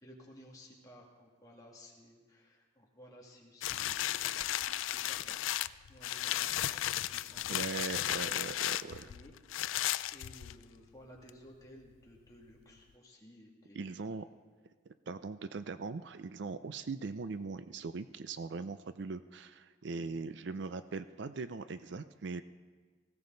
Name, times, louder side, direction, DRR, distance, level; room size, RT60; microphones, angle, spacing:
voice 1, 0.0-7.7 8.5-9.3 10.1-13.8 20.0-20.1, equal, 20° left, -2 dB, 2.3 m, -56 dB
sound 1, 3.6-10.8 11.3-11.4, left 13 dB, 80° left, 0.4 m, -35 dB
voice 2, 7.5-9.1 13.7-14.3 14.9-22.4, right 4 dB, 60° right, 12 dB, 0.5 m, -40 dB
18.5 x 16.5 x 3.9 m, 1.4 s
head